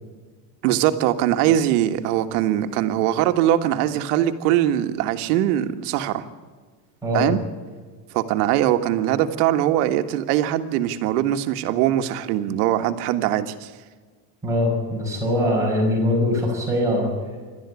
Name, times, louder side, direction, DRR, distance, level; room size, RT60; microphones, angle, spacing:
voice 1, 0.6-6.2 7.1-7.4 8.1-13.7, right 12 dB, 80° right, 8 dB, 1.8 m, -21 dB
voice 2, 7.0-7.3 14.4-17.1, left 1 dB, 5° right, -4 dB, 6.1 m, -22 dB
28.0 x 13.0 x 8.5 m, 1.5 s
cardioid pair, 180°, 46 cm